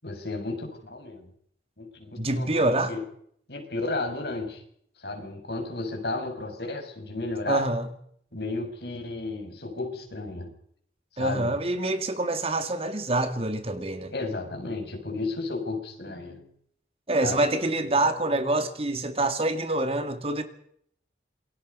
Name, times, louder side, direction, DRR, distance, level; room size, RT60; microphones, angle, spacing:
voice 1, 0.0-1.3 1.8-3.0 3.5-4.6 5.0-7.7 8.3-10.5 11.1-11.5 14.1-16.4 17.2-17.4, left 2 dB, 65° left, 6.6 m, -33 dB
voice 2, 2.2-2.9 7.5-7.9 11.2-14.1 17.1-20.4, right 2 dB, 35° right, 2.1 m, -26 dB
28.0 x 23.0 x 5.5 m
head